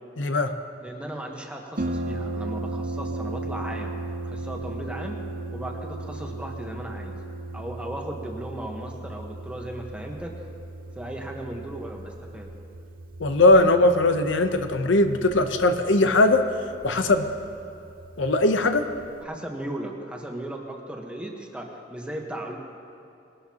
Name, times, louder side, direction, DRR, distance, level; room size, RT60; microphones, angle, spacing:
voice 1, 0.2-0.5 13.2-16.4 16.8-17.3 18.2-18.8, left 2 dB, 85° left, 7 dB, 0.8 m, -20 dB
voice 2, 0.8-3.9 4.2-5.2 5.5-7.2 7.5-10.5 10.9-12.5 19.2-22.5, right 1 dB, 5° right, 1 dB, 1.1 m, -36 dB
Harp, 1.8-19.2, right 2 dB, 50° right, 0.7 m, -36 dB
20.5 x 12.5 x 2.9 m, 2.7 s
head